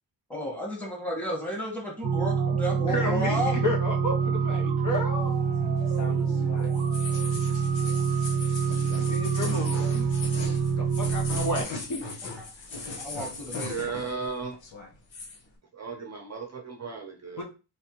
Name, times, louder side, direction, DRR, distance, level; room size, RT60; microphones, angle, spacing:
voice 1, 0.3-3.5 13.0-13.7, equal, 5° left, -2 dB, 1.5 m, -32 dB
sound 1, 2.0-11.6, right 6 dB, 80° right, 0.7 m, -26 dB
voice 2, 2.8-5.3 8.7-9.8 10.8-12.0 17.4-17.5, left 1 dB, 45° left, 0 dB, 1.1 m, -31 dB
sound 2, 5.2-14.3 14.5-15.4, left 3 dB, 75° left, 1.3 m, -39 dB
voice 3, 13.7-14.6 15.7-17.4, right 4 dB, 35° right, 3 dB, 0.7 m, -35 dB
3.3 x 3.3 x 3.0 m, 0.32 s
wide cardioid pair, 115°, 45 cm